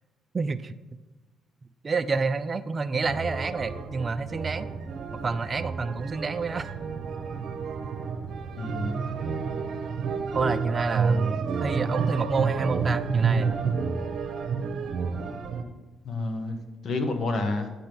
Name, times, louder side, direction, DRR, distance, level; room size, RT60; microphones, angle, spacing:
voice 1, 0.3-0.7 1.8-4.7 5.1-6.7 10.3-13.6, right 4 dB, 35° right, 11 dB, 0.4 m, -28 dB
sound 1, 3.0-15.6, right 5 dB, 60° right, 0.9 m, -30 dB
voice 2, 8.6-9.0 16.0-17.7, left 2 dB, 60° left, 6 dB, 1.3 m, -29 dB
8.5 x 5.3 x 6.1 m, 1.2 s
cardioid pair, 90°, 0 cm